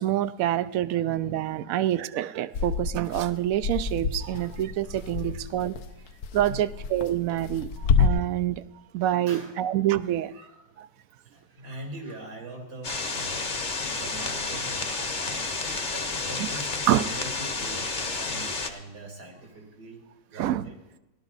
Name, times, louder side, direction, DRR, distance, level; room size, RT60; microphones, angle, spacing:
voice 1, 0.0-5.8 6.3-8.6 8.9-10.3 16.4-16.5 16.9-17.0 20.4-20.6, right 12 dB, 70° right, 0.9 m, -26 dB
voice 2, 1.2-1.8 3.2-3.4 4.2-4.6 4.9-5.5 5.8-6.0 6.5-6.7 7.7-7.8 9.0-9.6 10.3-10.7 11.2-20.8, right 2 dB, 85° right, 3.2 m, -43 dB
sound 1, 2.5-8.1, left 6 dB, 70° left, 1.2 m, -28 dB
sound 2, 12.8-18.7, left 3 dB, 35° left, 1.1 m, -31 dB
17.0 x 12.0 x 4.0 m
omnidirectional pair, 1.7 m